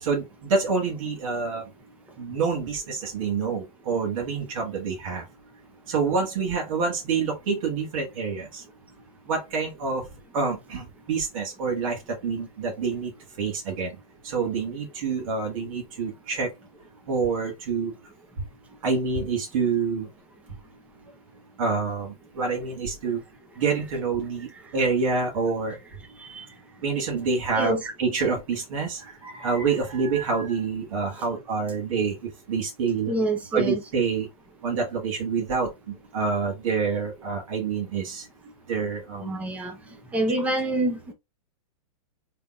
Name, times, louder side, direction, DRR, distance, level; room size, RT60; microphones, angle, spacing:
voice 1, 0.0-1.7 2.2-5.2 5.9-8.6 9.3-10.0 10.3-13.1 13.4-14.0 14.2-16.5 17.1-17.9 18.8-20.1 21.6-23.2 23.6-25.8 26.8-33.1 33.5-34.3 34.6-38.3 38.7-39.3, right 5 dB, 60° right, 1.6 m, -27 dB
voice 2, 27.5-27.9 33.1-33.8 39.2-39.7 40.1-41.1, right 2 dB, 5° right, 0.7 m, -26 dB
3.9 x 3.4 x 2.4 m
hypercardioid pair, 145°, 19 cm